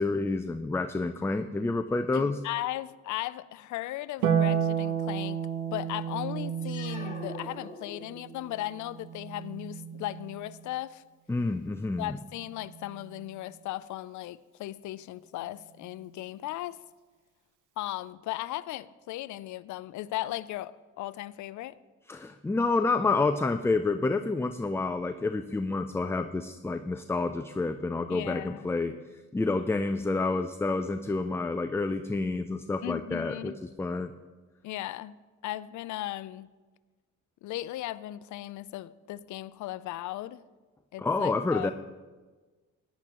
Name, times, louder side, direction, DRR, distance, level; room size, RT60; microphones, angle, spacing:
voice 1, 0.0-2.4 11.3-12.2 22.1-34.1 41.0-41.7, left 3 dB, 10° left, 9 dB, 0.3 m, -29 dB
voice 2, 2.1-5.4 5.7-11.0 12.0-16.8 17.8-21.7 28.1-28.8 32.8-33.6 34.6-35.2 35.4-36.5 37.4-40.4 40.9-41.7, left 15 dB, 75° left, 18 dB, 0.4 m, -37 dB
Harp, 4.2-10.7 12.4-13.4, right 8 dB, 80° right, 1.0 m, -32 dB
sound 1, 6.6-8.5, left 3 dB, 25° left, 2.2 m, -44 dB
14.0 x 10.5 x 2.9 m, 1.3 s
cardioid pair, 90°, 30 cm